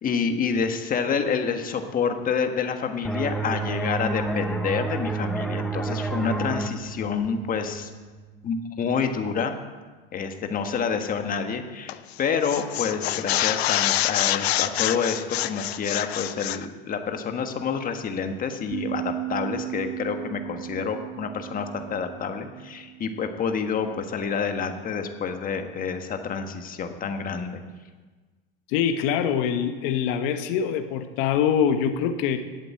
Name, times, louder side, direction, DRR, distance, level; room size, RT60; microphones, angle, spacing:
voice 1, 0.0-7.9 8.4-9.6 10.1-11.9 12.2-27.6, left 6 dB, 25° left, 6 dB, 1.5 m, -28 dB
sound 1, 3.0-8.4, right 3 dB, ahead, 0.9 m, -30 dB
sound 2, 11.9-12.1 12.4-16.7, left 14 dB, 85° left, 0.6 m, -26 dB
sound 3, 18.7-23.9, right 16 dB, 15° right, 0.4 m, -36 dB
voice 2, 28.7-32.4, left 8 dB, 60° left, 7 dB, 1.3 m, -24 dB
11.5 x 8.4 x 8.4 m, 1.3 s
supercardioid pair, 120°, 31 cm